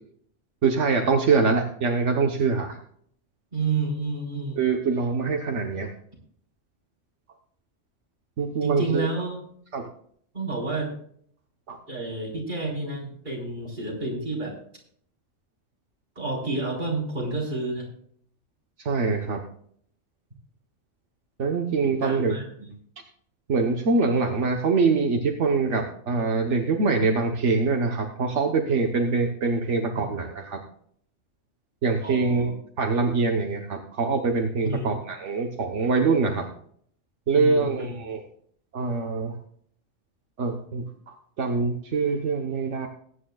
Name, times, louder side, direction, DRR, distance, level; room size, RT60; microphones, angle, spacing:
voice 1, 0.6-2.8 4.6-5.9 8.4-9.1 9.7-9.8 11.7-11.8 18.8-19.4 21.4-22.4 23.5-30.6 31.8-36.4 37.3-38.2 38.7-39.3 40.4-40.8 41.4-42.9, right 4 dB, 80° right, 3 dB, 1.4 m, -24 dB
voice 2, 3.5-4.7 8.6-9.4 10.3-10.9 11.9-14.5 16.2-17.9 21.8-22.7 30.0-30.1 32.0-32.5 34.6-34.9 37.3-38.0, right 3 dB, 40° right, -3 dB, 4.3 m, -30 dB
21.0 x 9.6 x 2.3 m, 0.62 s
omnidirectional pair, 1.2 m